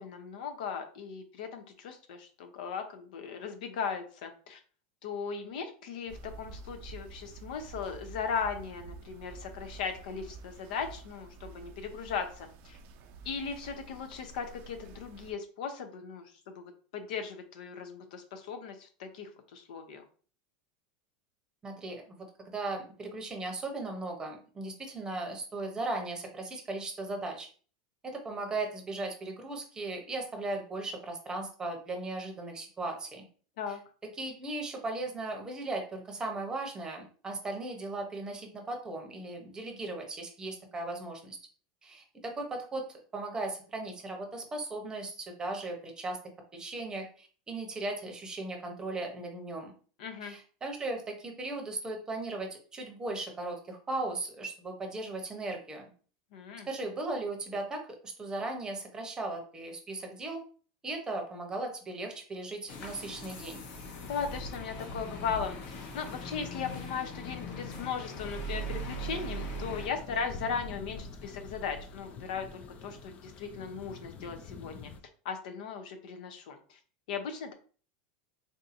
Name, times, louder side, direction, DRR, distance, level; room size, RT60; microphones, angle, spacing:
voice 1, 0.0-4.6 5.0-12.8 13.2-20.0 33.6-33.8 50.0-50.4 56.3-56.7 64.0-74.9 75.2-76.8 77.1-77.5, left 6 dB, 75° left, 6 dB, 0.7 m, -38 dB
sound 1, 6.1-15.3, right 3 dB, 50° right, 0.4 m, -49 dB
voice 2, 21.6-22.2 22.4-27.5 28.0-33.2 34.2-41.4 41.8-42.9 43.1-46.2 46.5-49.7 50.2-55.8 56.6-60.4 60.8-63.6, right 2 dB, 15° right, 3 dB, 0.8 m, -37 dB
sound 2, 62.7-69.9, right 1 dB, 50° left, 0.8 m, -40 dB
sound 3, 64.9-75.0, left 4 dB, 30° left, 0.4 m, -48 dB
3.6 x 2.7 x 2.5 m, 0.41 s
supercardioid pair, 135°, 4 cm